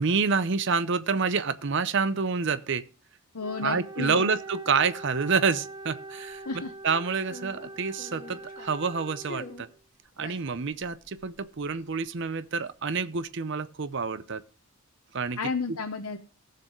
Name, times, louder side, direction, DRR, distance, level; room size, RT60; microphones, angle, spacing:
voice 1, 0.0-2.8 3.6-6.4 6.8-9.7 10.2-14.4 15.1-15.4, right 5 dB, 55° right, 0.6 m, -28 dB
voice 2, 3.3-4.3 6.4-6.7 15.4-16.2, left 4 dB, 80° left, 0.9 m, -32 dB
Wind instrument woodwind instrument, 3.4-9.8, right 2 dB, 20° right, 1.0 m, -43 dB
sound 1, 6.3-6.7 7.2-8.9 9.2-9.8 10.1-12.4 12.7-13.3, left 2 dB, 35° left, 1.0 m, -46 dB
17.0 x 6.7 x 3.1 m
head